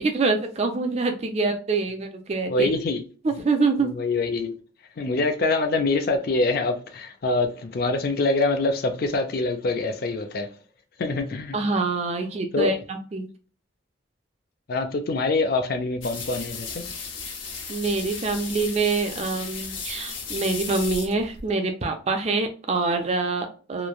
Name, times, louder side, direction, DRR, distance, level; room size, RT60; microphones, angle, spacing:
voice 1, 0.0-2.7 3.2-3.9 11.5-13.3 17.7-23.9, right 3 dB, 35° right, 0.4 m, -25 dB
voice 2, 2.5-3.0 4.0-4.6 5.0-10.5 11.0-11.5 12.5-12.7 14.7-16.8, left 3 dB, 50° left, 0.4 m, -25 dB
sound 1, 16.0-21.5, left 5 dB, 75° left, 0.9 m, -35 dB
3.1 x 2.1 x 2.3 m
head